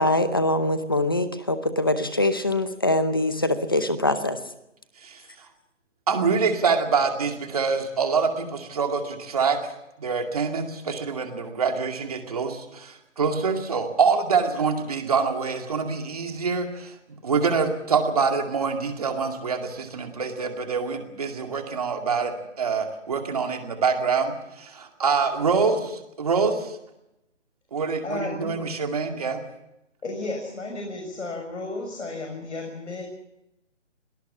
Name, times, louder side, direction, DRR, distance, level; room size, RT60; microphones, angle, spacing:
voice 1, 0.0-4.4, left 1 dB, 20° left, 11 dB, 0.8 m, -23 dB
voice 2, 6.1-9.6 10.0-16.9 17.2-26.8 27.7-29.4, right 5 dB, 30° right, 4 dB, 2.3 m, -25 dB
voice 3, 28.0-28.6 30.0-33.0, left 2 dB, 75° left, 3 dB, 6.5 m, -33 dB
25.5 x 18.0 x 7.3 m, 0.86 s
hypercardioid pair, 175°, 36 cm